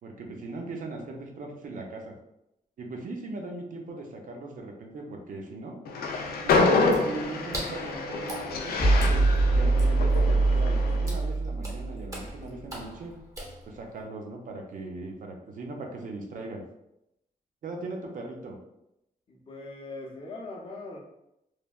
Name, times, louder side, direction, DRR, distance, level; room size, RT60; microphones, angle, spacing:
voice 1, 0.0-2.1 2.8-5.8 6.4-9.2 9.5-13.1 13.7-16.7 17.6-18.6, right 2 dB, 60° right, 1 dB, 0.6 m, -39 dB
Train, 5.8-11.1, left 3 dB, 85° left, 0.4 m, -27 dB
Water / Splash splatter, 6.8-14.0, right 1 dB, 20° right, 0.7 m, -43 dB
sound 1, 8.8-12.2, right 2 dB, 80° right, 1.4 m, -23 dB
voice 2, 19.3-21.0, left 2 dB, 35° left, 0 dB, 0.5 m, -40 dB
3.2 x 2.2 x 2.3 m, 0.83 s
wide cardioid pair, 140°, 15 cm